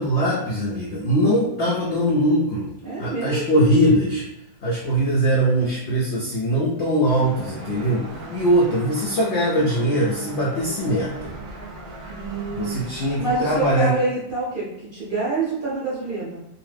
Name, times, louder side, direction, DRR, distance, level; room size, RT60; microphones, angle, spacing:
voice 1, 0.0-2.7 3.0-4.2 4.6-11.3 12.5-13.9, equal, 65° left, -5 dB, 0.6 m, -21 dB
voice 2, 2.8-3.7 12.1-12.8 13.2-16.4, right 3 dB, 45° right, -8 dB, 0.8 m, -27 dB
sound 1, 7.1-13.8, right 2 dB, 80° right, 0.4 m, -37 dB
2.9 x 2.0 x 3.2 m, 0.84 s
omnidirectional pair, 1.7 m